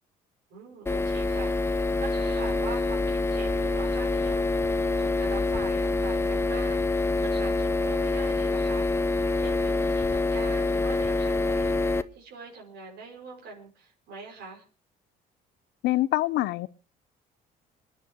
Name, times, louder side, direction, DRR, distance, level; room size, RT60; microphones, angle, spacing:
voice 1, 0.5-8.9 9.4-14.6, right 4 dB, 75° right, 6.0 m, -43 dB
sound 1, 0.9-12.0, left 3 dB, 15° left, 0.8 m, -26 dB
voice 2, 15.8-16.7, left 16 dB, 80° left, 0.8 m, -25 dB
28.0 x 10.5 x 3.0 m
cardioid pair, 110°, 17 cm